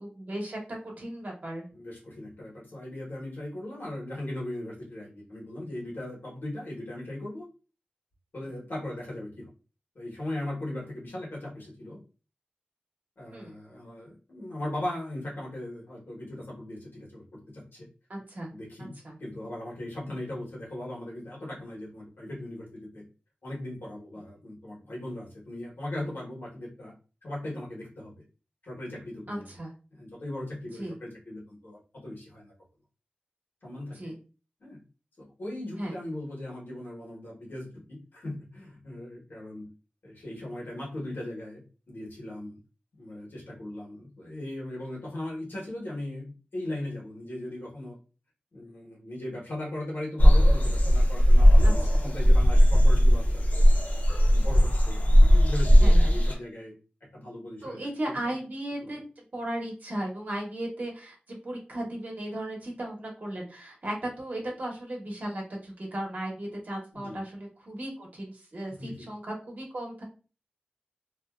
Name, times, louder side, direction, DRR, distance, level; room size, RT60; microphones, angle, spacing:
voice 1, 0.0-1.6 13.3-13.5 18.1-18.5 18.8-19.2 29.3-29.7 30.8-30.9 34.0-34.2 35.8-35.9 51.6-52.0 55.8-56.1 57.6-59.0 59.3-70.0, right 1 dB, 55° right, -1 dB, 0.9 m, -36 dB
voice 2, 1.7-7.5 8.3-9.5 9.9-12.0 13.2-17.9 18.5-18.9 19.2-23.0 23.4-26.9 27.2-28.1 28.6-29.5 29.9-32.5 33.6-34.1 34.6-34.8 35.2-37.7 38.1-39.7 40.0-41.6 41.9-42.6 43.0-48.0 48.5-53.6 54.2-56.7 57.1-57.8 58.1-58.3 58.8-58.9 66.9-67.2 68.7-69.0, left 1 dB, 85° left, -4 dB, 1.1 m, -38 dB
sound 1, 50.2-56.3, equal, 50° left, 0.6 m, -18 dB
2.5 x 2.2 x 2.3 m, 0.34 s
wide cardioid pair, 85°, 3 cm